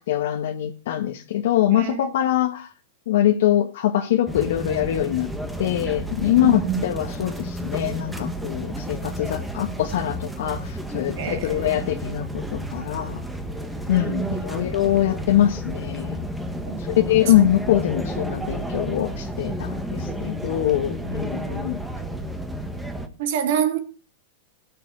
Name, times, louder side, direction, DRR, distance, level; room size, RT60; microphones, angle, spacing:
voice 1, 0.0-2.7 3.1-5.3 5.6-12.2 12.5-13.2 13.9-16.2 16.8-21.8, left 12 dB, 70° left, 1.4 m, -23 dB
voice 2, 1.7-2.1 6.4-6.8 11.2-11.9 13.9-14.4 16.7-16.8 23.2-23.8, right 8 dB, 60° right, 2.8 m, -26 dB
sound 1, 4.3-23.1, equal, 5° right, 1.4 m, -31 dB
17.5 x 6.8 x 4.7 m
supercardioid pair, 145°, 0 cm